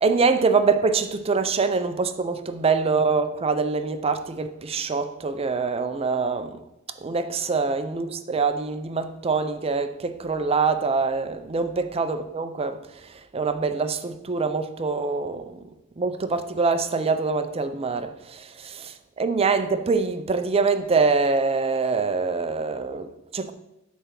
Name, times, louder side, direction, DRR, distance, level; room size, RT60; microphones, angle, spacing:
voice 1, 0.0-6.6 7.0-15.6 16.0-23.5, right 4 dB, 30° right, 0.5 m, -24 dB
8.4 x 3.4 x 5.9 m
head